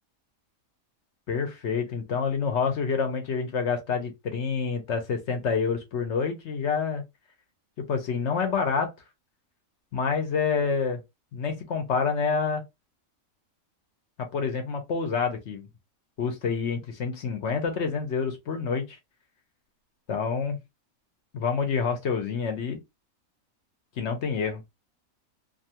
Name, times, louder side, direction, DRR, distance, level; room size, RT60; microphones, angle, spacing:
voice 1, 1.3-7.0 7.8-8.9 9.9-11.0 11.3-12.6 14.2-15.7 16.2-19.0 20.1-20.6 21.3-22.8 24.0-24.6, left 5 dB, 60° left, 0.9 m, -27 dB
2.6 x 2.3 x 2.8 m
omnidirectional pair, 1.5 m